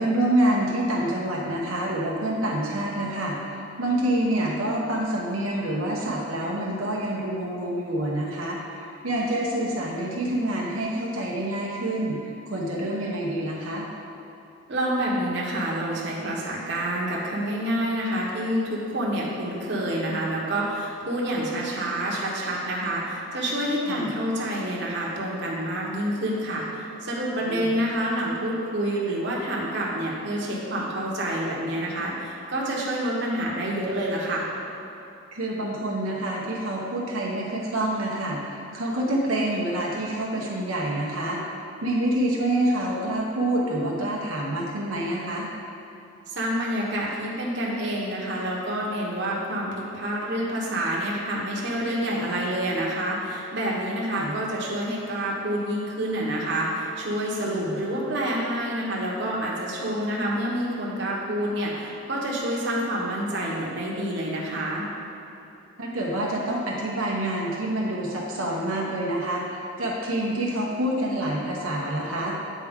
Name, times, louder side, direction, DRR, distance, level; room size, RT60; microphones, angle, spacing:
voice 1, 0.0-12.2 12.5-13.9 23.9-24.1 27.4-27.7 35.3-41.4 41.8-45.5 54.1-54.3 57.5-57.8 65.8-72.4, right 1 dB, 90° right, -3 dB, 0.9 m, -27 dB
voice 2, 14.7-34.5 46.3-64.8, right 1 dB, 55° right, -4 dB, 1.1 m, -28 dB
8.4 x 4.6 x 3.6 m, 2.8 s
head